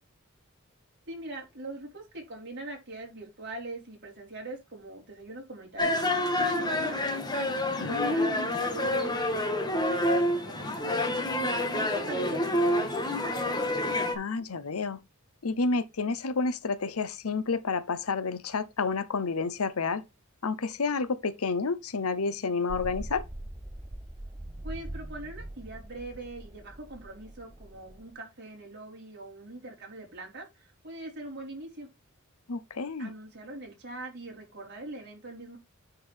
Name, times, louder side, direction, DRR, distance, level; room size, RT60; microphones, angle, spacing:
voice 1, 1.1-7.0 7.8-13.4 24.6-31.9 33.0-35.6, right 2 dB, 55° right, 4.4 m, -42 dB
sound 1, 5.8-14.2, left 1 dB, 20° left, 1.5 m, -28 dB
voice 2, 7.8-8.3 14.1-15.0 15.4-20.0 20.4-23.3 32.5-33.1, left 4 dB, 90° left, 0.8 m, -30 dB
sound 2, 22.7-28.1, right 1 dB, 15° right, 0.7 m, -42 dB
9.9 x 4.6 x 3.5 m
head